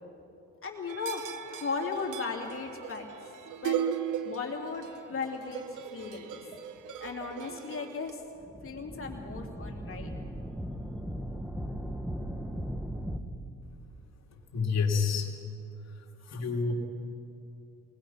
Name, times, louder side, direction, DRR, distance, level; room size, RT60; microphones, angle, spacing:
voice 1, 0.6-1.2 1.5-3.0 3.6-3.8 4.2-6.4 7.0-8.2 8.6-10.1, left 4 dB, 45° left, 1 dB, 3.3 m, -36 dB
sound 1, 0.9-8.1, right 9 dB, 90° right, 1.1 m, -37 dB
sound 2, 8.4-13.2, equal, 5° right, 1.3 m, -37 dB
voice 2, 14.5-15.3 16.2-16.7, left 5 dB, 60° left, 0 dB, 3.1 m, -28 dB
23.5 x 19.5 x 5.9 m, 2.7 s
cardioid pair, 90°, 30 cm